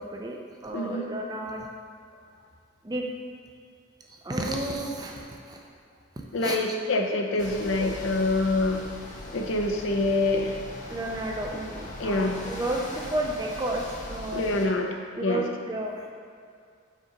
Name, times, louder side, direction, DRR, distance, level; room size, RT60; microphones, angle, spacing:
voice 1, 0.0-1.7 2.8-3.1 4.0-5.6 6.2-6.6 7.3-7.4 7.8-8.0 9.3-9.4 10.9-14.6 15.2-16.1, right 1 dB, 20° right, 0 dB, 0.5 m, -32 dB
voice 2, 0.7-1.1 6.3-8.8 9.3-10.5 12.0-12.4 14.3-14.9 15.2-15.4, left 2 dB, 70° left, 2 dB, 0.6 m, -26 dB
sound 1, 7.4-14.7, left 1 dB, 40° left, 0.9 m, -40 dB
5.1 x 3.9 x 5.3 m, 2.3 s
head